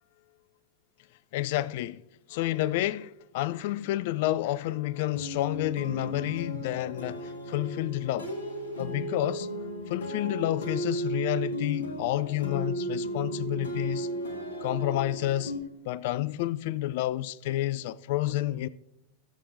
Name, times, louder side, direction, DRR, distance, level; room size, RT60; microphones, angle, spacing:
voice 1, 1.3-2.0 2.3-8.3 8.8-9.5 9.9-14.1 14.6-15.5 15.8-18.7, left 15 dB, 50° left, 0.3 m, -30 dB
sound 1, 5.2-15.6, right 1 dB, 70° left, 1.6 m, -35 dB
16.5 x 7.6 x 2.6 m
figure-of-eight pair, 90°, 0 cm